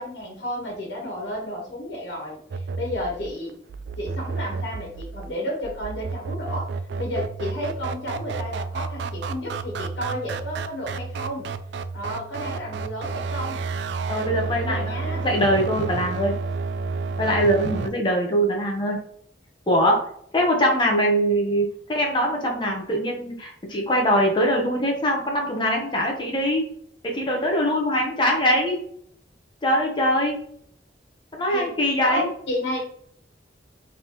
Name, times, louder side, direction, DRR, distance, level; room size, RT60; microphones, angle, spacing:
voice 1, 0.0-3.5 4.0-6.7 7.0-11.5 11.9-13.6 14.6-15.2 31.5-31.7 32.1-32.8, left 1 dB, 90° left, -2 dB, 1.3 m, -32 dB
sound 1, 2.5-17.9, right 4 dB, 75° right, 0.3 m, -31 dB
voice 2, 14.1-16.4 17.2-19.0 19.7-20.0 20.3-26.7 27.0-28.8 29.6-30.4 31.3-32.3, equal, 25° left, 1 dB, 0.8 m, -22 dB
4.0 x 3.4 x 3.0 m, 0.63 s
head